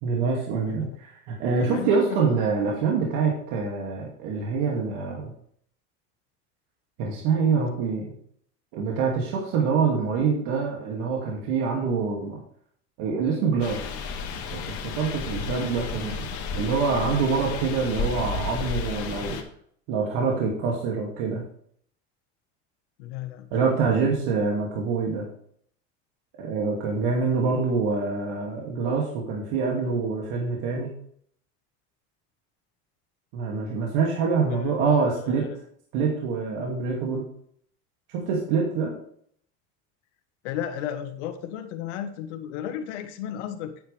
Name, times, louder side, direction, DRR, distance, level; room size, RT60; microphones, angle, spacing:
voice 1, 0.0-5.3 7.0-8.1 8.7-12.4 13.0-13.8 14.5-16.3 16.5-19.4 19.9-21.5 23.5-25.3 26.4-30.9 33.3-35.5 35.9-37.2 38.1-38.9, right 5 dB, 70° right, -1 dB, 2.5 m, -25 dB
voice 2, 1.6-2.2 19.2-19.4 23.0-23.5 34.5-34.8 35.2-35.5 40.4-43.7, left 10 dB, 85° left, 7 dB, 1.5 m, -34 dB
sound 1, 13.6-19.4, left 5 dB, 55° left, 2.0 m, -32 dB
9.4 x 9.0 x 3.4 m, 0.62 s
supercardioid pair, 100°, 34 cm